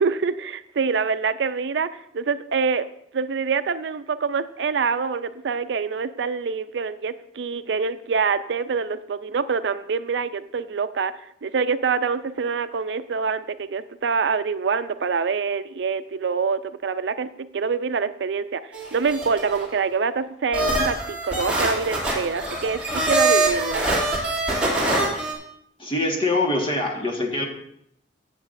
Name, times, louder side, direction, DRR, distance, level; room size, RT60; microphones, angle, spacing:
voice 1, 0.0-2.9 3.1-11.1 11.4-23.9, right 5 dB, 75° right, 12 dB, 0.4 m, -25 dB
sound 1, 18.7-19.7 20.5-25.3, right 2 dB, 5° right, 2.5 m, -24 dB
voice 2, 25.8-27.4, left 2 dB, 30° left, 1 dB, 1.5 m, -24 dB
14.5 x 8.0 x 2.6 m, 0.73 s
head